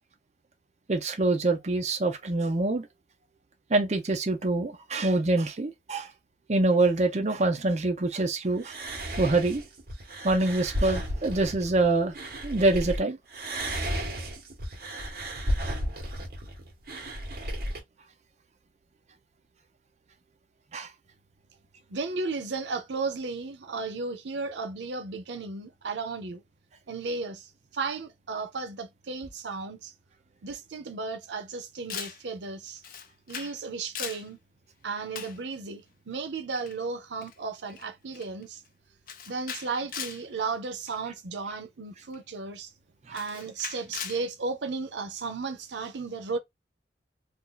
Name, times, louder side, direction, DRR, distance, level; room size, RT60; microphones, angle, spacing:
voice 1, 0.9-2.9 3.7-6.1 6.5-8.7 9.2-9.6 10.2-12.1 12.4-13.2 20.7-20.9, right 2 dB, 40° right, 0.6 m, -25 dB
sound 1, 8.6-13.0 13.3-17.8, equal, 55° right, 1.2 m, -33 dB
voice 2, 21.9-26.4 26.9-29.9 30.4-32.8 33.3-34.4 34.8-38.6 39.3-42.7 43.1-46.4, right 4 dB, 85° right, 0.7 m, -34 dB
Camera, 31.9-32.2 32.8-33.6 33.8-34.3 35.1-35.4 36.6-36.8 37.2-37.3 37.7-37.9 38.1-38.4 39.1-40.2 40.9-41.1 42.1-42.2 43.1-44.2, left 7 dB, 50° left, 0.5 m, -39 dB
2.7 x 2.4 x 3.8 m
head